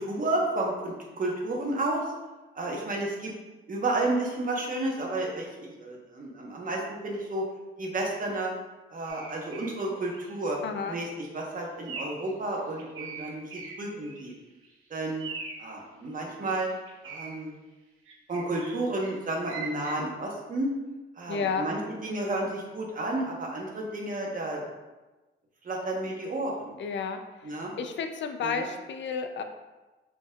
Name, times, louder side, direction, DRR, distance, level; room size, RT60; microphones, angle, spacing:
voice 1, 0.0-2.0 2.6-3.3 3.7-7.4 7.8-8.5 8.9-10.6 10.9-14.3 14.9-15.2 15.6-16.7 17.0-17.5 18.3-20.7 21.2-24.6 25.6-26.7 27.4-27.7 28.4-28.7, right 2 dB, 40° right, -1 dB, 1.0 m, -31 dB
sound 1, 9.1-9.8 10.1-10.4 10.9-11.1 11.9-12.3 12.6-14.4 14.6-14.7 15.2-15.7 16.6-17.4 18.1-19.9, right 4 dB, 85° right, 0.8 m, -41 dB
voice 2, 10.6-11.0 21.3-21.7 26.8-27.2 27.8-29.4, left 5 dB, 60° left, 7 dB, 0.4 m, -31 dB
5.0 x 3.7 x 2.3 m, 1.1 s
cardioid pair, 110°, 21 cm